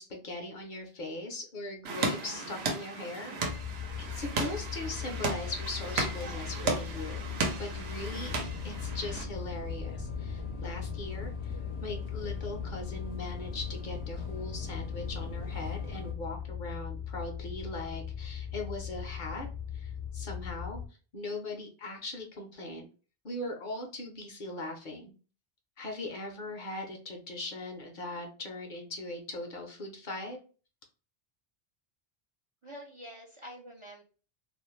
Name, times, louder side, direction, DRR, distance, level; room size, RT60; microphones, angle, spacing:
voice 1, 0.0-7.3 7.6-8.3 8.6-19.5 19.7-20.8 21.1-22.9 23.2-25.1 25.8-30.4, left 2 dB, 55° left, 2 dB, 0.7 m, -40 dB
sound 1, 1.8-9.2, right 3 dB, 85° right, 0.9 m, -35 dB
sound 2, 3.4-20.9, left 8 dB, 25° left, 0.4 m, -39 dB
sound 3, 8.3-16.1, left 2 dB, 85° left, 0.9 m, -42 dB
voice 2, 32.6-34.0, equal, 45° right, -1 dB, 0.4 m, -46 dB
2.4 x 2.0 x 3.0 m, 0.36 s
omnidirectional pair, 1.0 m